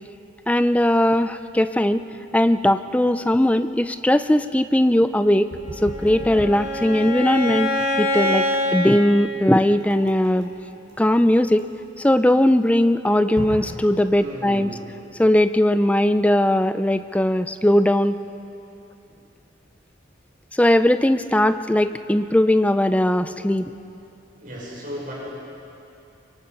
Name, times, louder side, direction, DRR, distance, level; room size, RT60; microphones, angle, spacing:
voice 1, 0.5-2.0 2.3-5.5 5.8-7.7 8.0-10.5 11.0-11.6 12.0-14.7 15.2-18.2 20.5-23.7, left 1 dB, 5° left, 11 dB, 0.4 m, -19 dB
sound 1, 5.5-14.3, equal, 80° right, 5.0 m, -38 dB
Bowed string instrument, 5.6-8.8, left 1 dB, 70° left, 6.8 m, -25 dB
voice 2, 14.2-14.8 19.1-19.2 24.4-25.1, equal, 45° right, -5 dB, 5.6 m, -35 dB
25.0 x 23.0 x 5.3 m, 2.8 s
head